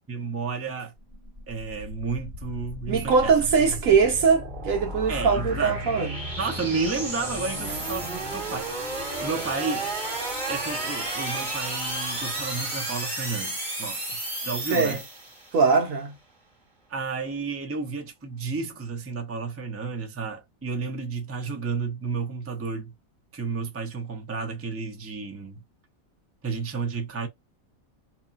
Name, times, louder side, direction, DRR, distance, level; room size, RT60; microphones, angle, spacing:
voice 1, 0.1-0.9 1.5-3.3 5.1-5.8 6.4-8.7 9.2-9.9 10.5-14.2 14.4-15.0 16.9-22.9 23.3-25.6 26.4-27.3, right 4 dB, 15° right, 0.6 m, -32 dB
sound 1, 1.0-15.6, right 1 dB, 35° right, 1.6 m, -33 dB
voice 2, 2.9-6.2 14.7-15.0 15.5-16.1, right 5 dB, 75° right, 1.3 m, -21 dB
2.9 x 2.3 x 2.5 m
omnidirectional pair, 1.4 m